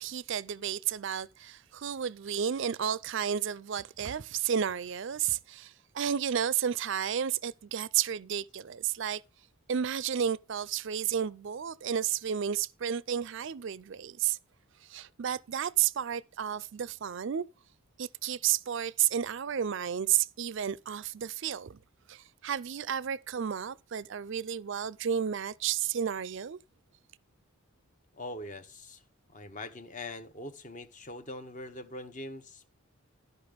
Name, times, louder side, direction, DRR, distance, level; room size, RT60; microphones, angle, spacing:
voice 1, 0.0-9.2 9.7-14.4 14.8-17.4 18.0-21.8 22.1-26.6, right 9 dB, 55° right, 0.4 m, -32 dB
voice 2, 28.1-29.0 29.3-32.7, left 2 dB, 35° left, 0.9 m, -42 dB
12.0 x 5.4 x 5.1 m
head